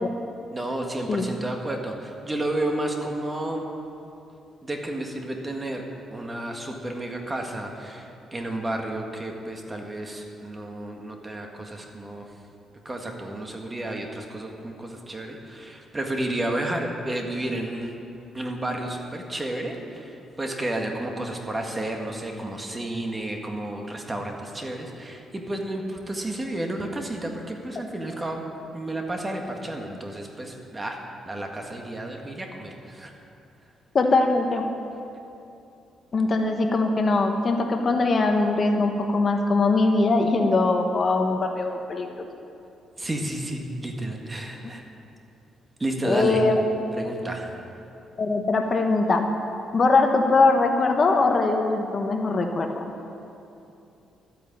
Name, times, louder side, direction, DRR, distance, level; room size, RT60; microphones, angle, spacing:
voice 1, 0.5-3.6 4.6-5.8 6.1-12.3 12.8-17.9 18.3-28.4 28.7-31.0 31.2-33.1 43.0-44.8 45.8-46.4 46.9-47.6, right 1 dB, 15° right, 2 dB, 1.6 m, -31 dB
voice 2, 33.9-34.7 36.1-42.3 46.0-46.6 48.2-49.3 49.7-52.8, left 3 dB, 35° left, 4 dB, 1.1 m, -21 dB
12.5 x 9.2 x 8.8 m, 2.7 s
cardioid pair, 125°, 0 cm